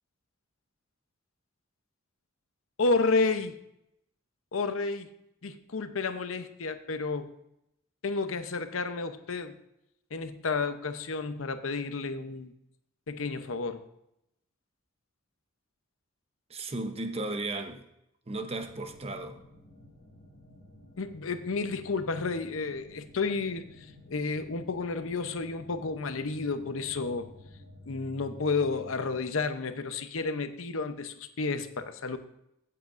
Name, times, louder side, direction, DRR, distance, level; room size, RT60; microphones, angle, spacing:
voice 1, 2.8-3.6 4.5-5.1 5.4-7.3 8.0-9.6 10.1-12.5 13.1-13.8 21.0-27.3 27.9-32.2, left 4 dB, 90° left, 9 dB, 0.8 m, -31 dB
voice 2, 16.5-17.8 18.3-19.4, right 2 dB, 30° right, 7 dB, 0.9 m, -35 dB
sound 1, 18.3-29.3, left 1 dB, 45° left, 1.8 m, -52 dB
16.0 x 7.7 x 2.6 m, 0.81 s
head